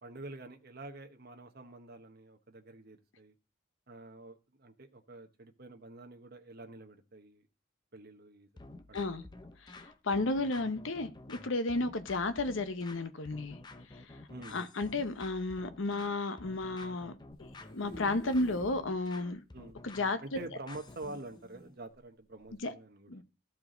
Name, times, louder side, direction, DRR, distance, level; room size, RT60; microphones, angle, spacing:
voice 1, 0.0-3.3 3.9-7.5 7.9-8.5 8.9-9.2 14.3-14.6 19.5-19.8 20.2-23.2, right 2 dB, 50° right, 1.1 m, -47 dB
sound 1, 8.6-21.2, left 2 dB, 20° left, 0.6 m, -51 dB
voice 2, 8.9-9.2 9.6-13.6 14.0-14.2 14.5-17.1 17.4-17.5 17.7-19.4 19.8-20.2 22.6-22.7 23.1-23.2, left 2 dB, 70° left, 0.8 m, -33 dB
sound 2, 17.3-18.8 19.3-19.4 19.6-19.7 20.8-21.7 22.4-22.6, left 1 dB, 85° left, 3.0 m, -49 dB
14.0 x 4.7 x 3.9 m
head